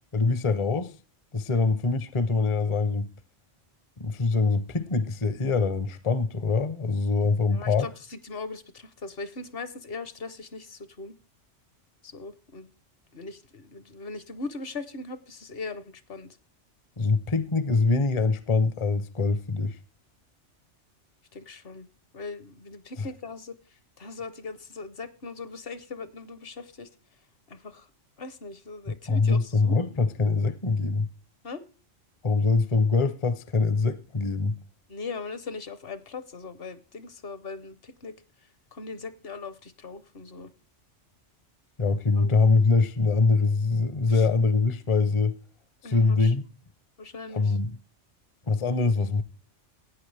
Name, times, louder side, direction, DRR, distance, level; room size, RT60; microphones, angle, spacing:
voice 1, 0.1-0.9 1.3-3.1 4.0-7.9 17.0-19.8 23.0-23.1 28.9-31.1 32.2-34.6 41.8-45.4 45.9-46.4 47.3-47.8 48.5-49.2, left 4 dB, 35° left, 0.6 m, -24 dB
voice 2, 7.5-11.2 12.0-12.7 13.1-16.4 21.3-21.9 22.1-26.9 27.5-27.9 28.2-29.8 31.4-31.6 34.9-40.5 42.2-42.3 44.1-44.3 45.8-46.3 47.0-47.6, left 3 dB, 55° left, 1.0 m, -40 dB
15.5 x 9.1 x 3.3 m
omnidirectional pair, 1.2 m